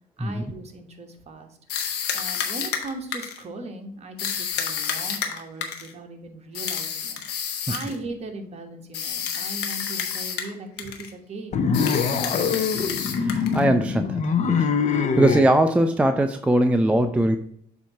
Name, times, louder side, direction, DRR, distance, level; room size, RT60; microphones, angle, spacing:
voice 1, 0.2-12.6, right 2 dB, 40° right, 4 dB, 1.2 m, -39 dB
sound 1, 1.7-3.4 4.2-5.9 6.5-8.0 8.9-10.5 10.8-11.1 11.7-13.6, left 7 dB, 85° left, 1.0 m, -29 dB
sound 2, 11.5-15.5, left 6 dB, 45° left, 0.7 m, -23 dB
voice 2, 13.2-14.7 15.2-17.4, right 1 dB, 5° right, 6 dB, 0.3 m, -21 dB
7.4 x 2.8 x 5.6 m, 0.68 s
cardioid pair, 110°, 17 cm